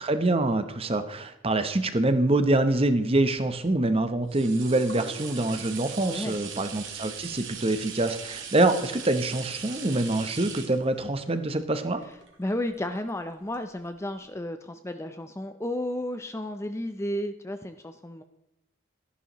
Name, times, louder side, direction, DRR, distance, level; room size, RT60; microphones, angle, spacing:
voice 1, 0.0-12.0, right 2 dB, 25° right, 9 dB, 0.8 m, -25 dB
sound 1, 3.7-13.0 13.5-13.6, right 6 dB, 60° right, 1.8 m, -40 dB
voice 2, 6.0-6.4 12.4-18.2, left 1 dB, 15° left, 8 dB, 0.5 m, -33 dB
13.0 x 11.0 x 3.0 m, 0.91 s
head